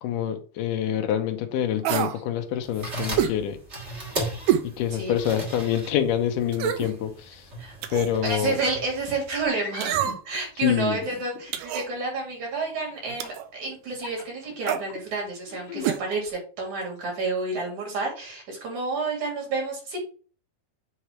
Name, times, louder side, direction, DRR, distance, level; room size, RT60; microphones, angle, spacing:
voice 1, 0.0-3.6 4.0-4.1 4.6-7.5 7.9-8.6 10.6-11.0, left 10 dB, 75° left, 2.3 m, -26 dB
sound 1, 1.8-2.2 3.2-3.4 4.5-4.7 5.2-5.3 6.5-6.9 7.8-8.2 9.8-10.4 11.5-11.9 13.2-13.5 14.6-14.9 15.8-16.0 16.3-16.4, right 10 dB, 80° right, 2.0 m, -26 dB
sound 2, 2.6-9.5, right 1 dB, 25° right, 1.8 m, -37 dB
voice 2, 8.2-10.0 10.3-20.0, right 3 dB, 55° right, 3.8 m, -30 dB
sound 3, 8.6-8.8 9.5-10.2 10.9-11.6 13.1-13.4 13.9-15.0 15.5-15.9, left 6 dB, 55° left, 2.6 m, -39 dB
8.2 x 3.3 x 4.4 m
omnidirectional pair, 4.1 m